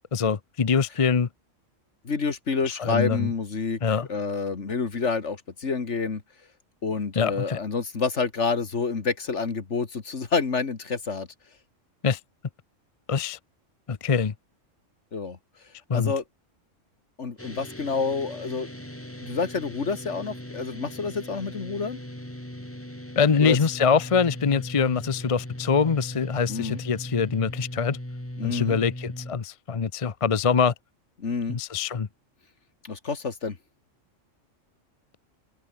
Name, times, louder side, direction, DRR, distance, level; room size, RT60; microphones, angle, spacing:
voice 1, 0.1-1.3 2.8-3.3 3.8-4.1 7.2-7.6 12.0-12.2 13.1-13.4 13.9-14.3 15.9-16.1 23.2-28.0 28.4-30.7 31.5-32.1, left 6 dB, 30° left, 0.7 m, -24 dB
voice 2, 2.0-3.8 4.1-6.2 6.8-11.3 15.1-15.4 15.9-16.2 17.2-18.7 19.2-22.0 23.4-23.6 26.5-26.8 28.4-28.8 31.2-31.6 32.8-33.6, left 4 dB, 65° left, 2.3 m, -28 dB
sound 1, 17.4-29.3, left 1 dB, 10° left, 3.3 m, -38 dB
open air
omnidirectional pair, 1.3 m